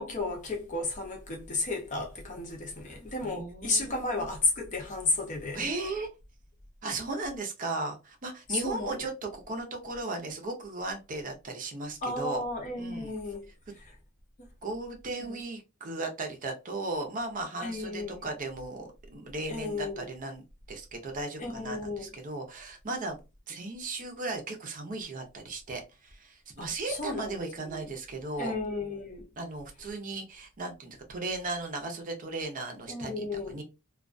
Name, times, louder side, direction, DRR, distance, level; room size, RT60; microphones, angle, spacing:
voice 1, 0.0-5.6 8.5-9.0 12.0-13.4 14.4-14.5 15.2-15.3 17.6-18.2 19.5-20.1 21.4-22.1 26.6-27.9 28.4-29.3 32.9-33.6, left 2 dB, 35° left, 0.7 m, -33 dB
voice 2, 3.2-4.3 5.5-6.1 6.8-12.4 12.8-13.1 14.6-20.4 20.7-23.2 23.5-28.5 29.4-33.6, right 2 dB, 40° right, 0.6 m, -36 dB
2.3 x 2.2 x 2.4 m
head